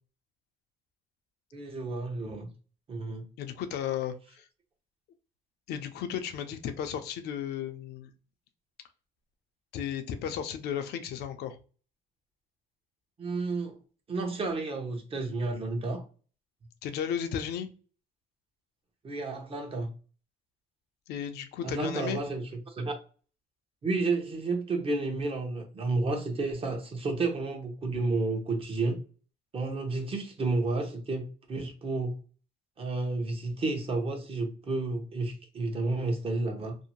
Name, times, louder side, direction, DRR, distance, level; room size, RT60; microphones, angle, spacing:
voice 1, 1.5-2.5 2.9-3.3 13.2-13.7 14.1-16.0 19.0-19.9 21.6-22.9 23.8-29.0 29.5-32.2 32.8-36.8, right 3 dB, 35° right, 0.8 m, -31 dB
voice 2, 3.4-4.4 5.7-8.1 9.7-11.6 16.8-17.7 21.1-22.2, left 9 dB, 75° left, 0.5 m, -34 dB
2.6 x 2.1 x 2.9 m
cardioid pair, 110°, 17 cm